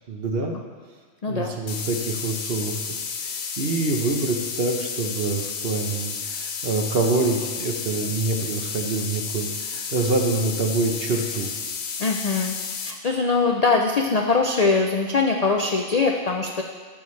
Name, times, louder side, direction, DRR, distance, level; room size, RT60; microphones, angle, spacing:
voice 1, 0.1-0.6 1.3-2.8 3.2-11.5, right 3 dB, 50° right, 2 dB, 1.0 m, -26 dB
voice 2, 1.2-1.6 12.0-12.6 12.9-16.6, left 4 dB, 60° left, 1 dB, 0.4 m, -22 dB
sound 1, 1.7-12.9, left 6 dB, 90° left, 1.2 m, -32 dB
12.0 x 7.0 x 3.2 m, 1.5 s
omnidirectional pair, 1.4 m